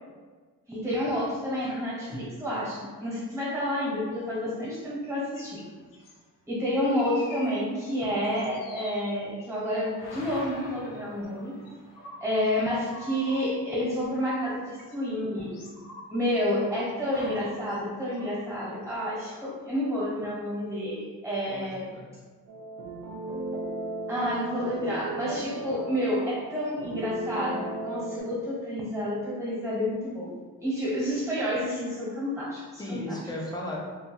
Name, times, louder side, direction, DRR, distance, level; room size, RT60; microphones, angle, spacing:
voice 1, 0.7-5.6 6.5-11.6 12.2-15.6 16.1-21.9 24.1-30.4 30.6-33.1, equal, 10° right, -8 dB, 1.4 m, -29 dB
sound 1, 5.4-6.2 6.9-7.9 8.2-9.7 10.0-14.5 14.8-16.6 16.9-19.4, left 1 dB, 75° left, 0.6 m, -47 dB
voice 2, 21.5-22.0 32.8-33.8, left 1 dB, 10° left, -4 dB, 0.5 m, -36 dB
sound 2, 22.5-28.2, right 2 dB, 65° right, 0.6 m, -36 dB
2.7 x 2.7 x 2.3 m, 1.5 s
cardioid pair, 120°, 33 cm